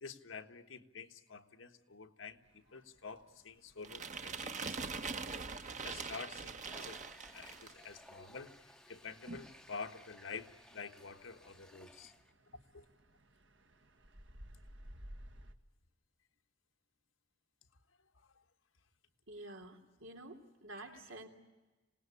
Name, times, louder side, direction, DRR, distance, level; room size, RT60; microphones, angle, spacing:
voice 1, 0.0-7.0 7.3-12.1 12.7-12.8 18.2-18.3 20.8-21.0, left 5 dB, 80° left, 7 dB, 1.5 m, -49 dB
sound 1, 2.4-15.5, equal, 65° right, 1.7 m, -58 dB
sound 2, 3.8-7.9, right 5 dB, 40° right, 1.1 m, -42 dB
Water tap faucet, 6.5-12.3, left 1 dB, 5° left, 0.8 m, -59 dB
voice 2, 19.3-21.3, right 1 dB, 90° right, 4 dB, 3.1 m, -50 dB
27.0 x 19.0 x 9.8 m, 1.2 s
head